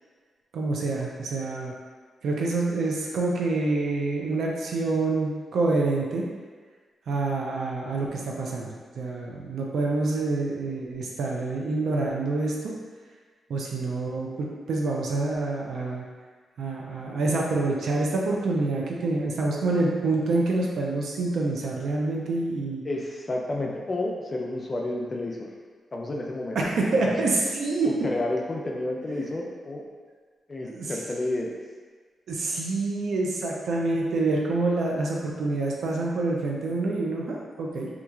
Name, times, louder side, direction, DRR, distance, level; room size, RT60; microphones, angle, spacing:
voice 1, 0.5-1.7 2.2-6.3 7.1-12.7 13.5-16.0 16.6-22.8 26.6-27.9 30.6-30.9 32.3-37.9, right 3 dB, 80° right, -1 dB, 0.4 m, -27 dB
voice 2, 22.8-25.5 25.9-26.6 26.9-27.2 28.0-29.8 30.5-31.5, left 2 dB, 35° left, -1 dB, 0.4 m, -30 dB
2.9 x 2.4 x 2.3 m, 1.5 s
cardioid pair, 90°, 0 cm